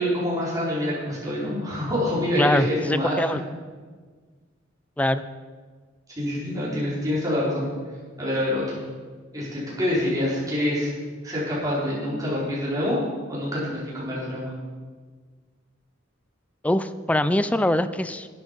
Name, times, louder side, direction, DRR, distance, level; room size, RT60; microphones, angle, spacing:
voice 1, 0.0-3.3 6.2-7.7 8.2-8.8 9.3-10.9 11.2-13.0 13.3-14.4, left 1 dB, 20° right, -7 dB, 4.1 m, -26 dB
voice 2, 2.4-3.4 5.0-5.2 16.6-18.3, left 1 dB, 5° left, 12 dB, 0.3 m, -23 dB
11.0 x 9.3 x 5.4 m, 1.5 s
head